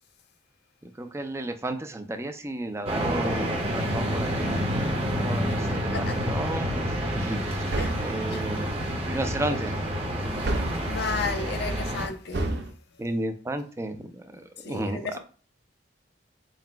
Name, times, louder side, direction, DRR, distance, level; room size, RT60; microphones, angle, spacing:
voice 1, 0.8-4.8 5.2-7.6 8.0-9.8 13.0-15.2, right 1 dB, 15° right, 0.4 m, -33 dB
sound 1, 2.9-12.1, equal, 30° right, 0.9 m, -28 dB
sound 2, 7.7-8.2 10.4-10.9 12.3-12.7, right 1 dB, 65° right, 0.5 m, -29 dB
voice 2, 10.9-12.5 14.6-15.2, left 4 dB, 60° left, 0.5 m, -33 dB
4.0 x 2.1 x 4.4 m
head